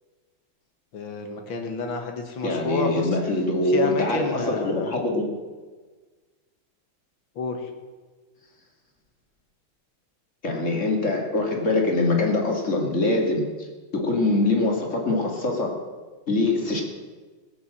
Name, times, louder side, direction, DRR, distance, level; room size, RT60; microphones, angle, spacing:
voice 1, 0.9-3.1 3.6-5.0 7.4-7.7, left 4 dB, 75° left, 4 dB, 2.4 m, -29 dB
voice 2, 2.4-5.3 10.4-13.4 13.9-15.7 16.3-16.8, left 2 dB, 35° left, 1 dB, 2.6 m, -23 dB
17.5 x 7.1 x 7.6 m, 1.4 s
omnidirectional pair, 2.2 m